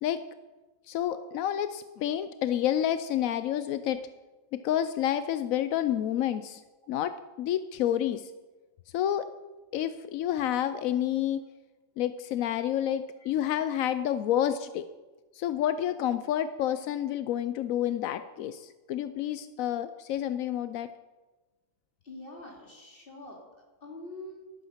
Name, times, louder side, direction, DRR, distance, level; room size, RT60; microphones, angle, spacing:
voice 1, 0.9-4.0 4.5-6.6 6.9-8.3 8.9-9.3 9.7-11.5 12.0-14.9 15.3-20.9, left 11 dB, 90° left, 11 dB, 1.0 m, -29 dB
voice 2, 22.0-23.4 23.8-24.5, left 2 dB, 40° left, -1 dB, 3.0 m, -44 dB
13.5 x 11.0 x 5.8 m, 1.2 s
omnidirectional pair, 1.4 m